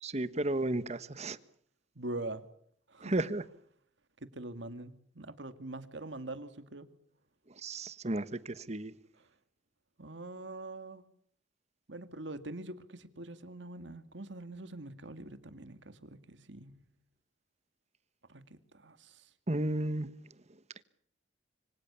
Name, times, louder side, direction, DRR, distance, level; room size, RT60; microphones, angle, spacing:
voice 1, 0.0-1.4 3.0-3.4 7.6-8.9 19.5-20.1, right 1 dB, 35° right, 1.3 m, -33 dB
voice 2, 2.0-2.4 2.9-3.1 4.2-6.9 10.0-11.0 11.9-16.7 18.3-18.4 18.7-19.2, right 2 dB, 70° right, 2.2 m, -43 dB
26.0 x 25.0 x 7.0 m
head